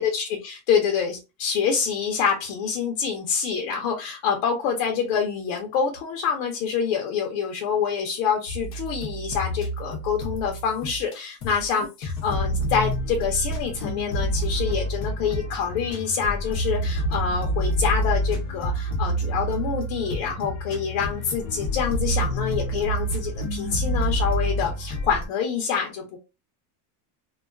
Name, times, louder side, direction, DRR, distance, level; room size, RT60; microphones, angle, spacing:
voice 1, 0.0-26.2, left 6 dB, 70° left, 2 dB, 0.8 m, -26 dB
sound 1, 8.5-11.2 11.4-11.7 12.0-25.3, equal, 40° left, 0.8 m, -28 dB
2.4 x 2.3 x 2.3 m, 0.27 s
cardioid pair, 145°, 46 cm